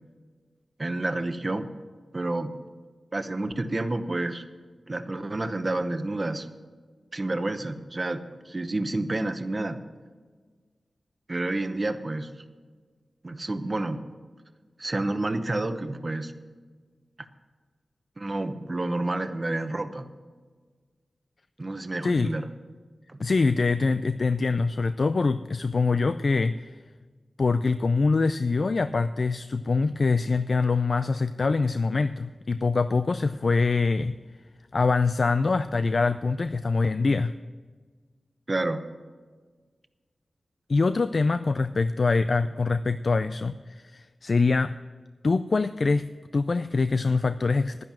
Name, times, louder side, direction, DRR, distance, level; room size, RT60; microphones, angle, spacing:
voice 1, 0.8-1.7 2.1-2.5 3.1-4.4 4.9-6.5 7.1-9.8 11.3-12.3 13.2-14.0 14.8-16.3 18.2-20.0 21.6-22.5 23.1-23.2 38.5-38.8, right 2 dB, 35° right, 9 dB, 0.9 m, -29 dB
voice 2, 23.2-26.7 27.4-34.2 34.7-37.3 40.7-44.8 45.2-47.8, left 4 dB, 55° left, 12 dB, 0.3 m, -24 dB
11.0 x 10.5 x 6.1 m, 1.5 s
wide cardioid pair, 70°, 0 cm